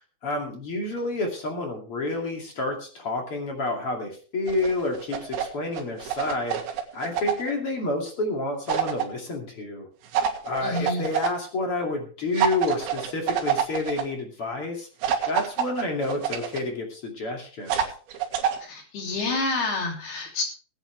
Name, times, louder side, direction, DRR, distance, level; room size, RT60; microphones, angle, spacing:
voice 1, 0.2-9.9 10.4-14.9 15.3-17.8, left 2 dB, 35° left, 1 dB, 2.7 m, -29 dB
sound 1, 4.5-5.5 5.7-7.5 8.7-9.0 10.1-11.3 12.3-14.0 15.0-16.6 17.7-18.6, right 8 dB, 65° right, 3.3 m, -27 dB
voice 2, 10.6-11.0 18.6-20.4, left 3 dB, 60° left, 1 dB, 5.0 m, -28 dB
21.0 x 9.0 x 3.4 m, 0.39 s
omnidirectional pair, 5.4 m